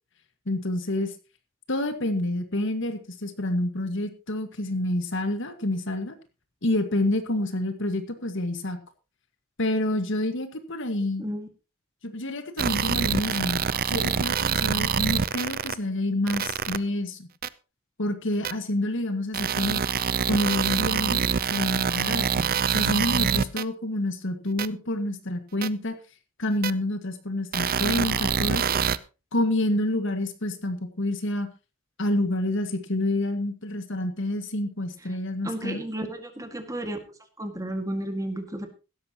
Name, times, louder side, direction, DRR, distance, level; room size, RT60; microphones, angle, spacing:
voice 1, 0.5-1.2 1.7-6.2 6.6-8.8 9.6-11.3 12.0-17.3 18.0-20.0 20.3-26.0 26.4-28.8 29.3-31.5 32.0-35.8, left 1 dB, 60° left, 8 dB, 1.8 m, -28 dB
sound 1, 12.6-15.7 16.3-16.8 17.4-17.5 18.4-18.5 19.3-23.6 24.6-24.7 25.6-25.7 26.6-26.7 27.5-29.0, right 7 dB, 45° right, 0.6 m, -25 dB
voice 2, 35.4-37.0 37.4-38.7, right 1 dB, 15° right, 6 dB, 1.9 m, -32 dB
16.5 x 13.0 x 3.0 m, 0.31 s
head